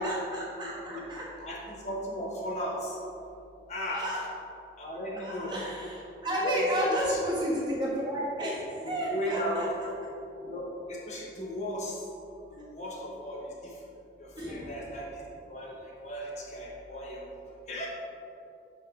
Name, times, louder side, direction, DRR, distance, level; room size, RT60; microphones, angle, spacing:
voice 1, 0.0-1.2 3.9-4.2 5.2-9.9 14.4-14.6, equal, 25° right, -6 dB, 1.4 m, -32 dB
voice 2, 1.4-3.0 3.7-4.0 4.8-5.5 6.4-7.2 8.8-9.6 10.4-12.0 12.5-13.7 14.2-17.9, equal, 40° left, -4 dB, 1.1 m, -36 dB
7.5 x 5.7 x 3.7 m, 2.7 s
head